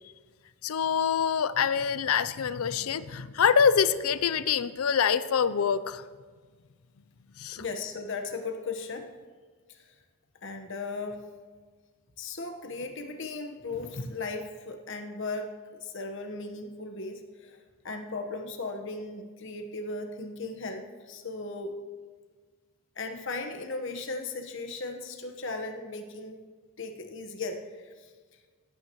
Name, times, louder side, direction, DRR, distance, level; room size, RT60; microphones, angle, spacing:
voice 1, 0.6-6.0 7.4-7.6, left 7 dB, 80° left, 15 dB, 0.5 m, -25 dB
voice 2, 7.5-9.1 10.4-11.2 12.2-15.5 15.8-17.6 17.8-21.8 23.0-26.4 26.8-27.6, left 3 dB, 60° left, 5 dB, 1.2 m, -36 dB
17.5 x 9.1 x 3.1 m, 1.5 s
head